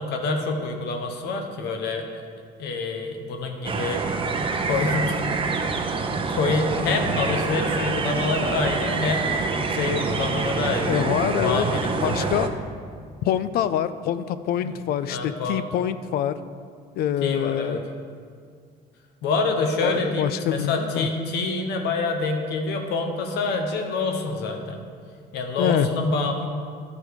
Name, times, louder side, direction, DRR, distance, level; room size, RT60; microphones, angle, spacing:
voice 1, 0.0-2.2 2.6-4.0 4.6-5.2 5.8-9.4 9.7-12.4 14.7-14.8 15.1-15.7 17.2-17.8 19.2-24.8 25.3-26.5, left 3 dB, 80° left, 4 dB, 1.1 m, -27 dB
sound 1, 3.6-12.5, right 4 dB, 30° right, 0.7 m, -26 dB
voice 2, 10.9-11.7 12.0-12.5 13.2-16.4 17.0-17.8 19.8-21.1 25.6-25.9, left 10 dB, 65° left, 13 dB, 0.4 m, -25 dB
12.0 x 5.0 x 4.8 m, 2.1 s
cardioid pair, 110°, 17 cm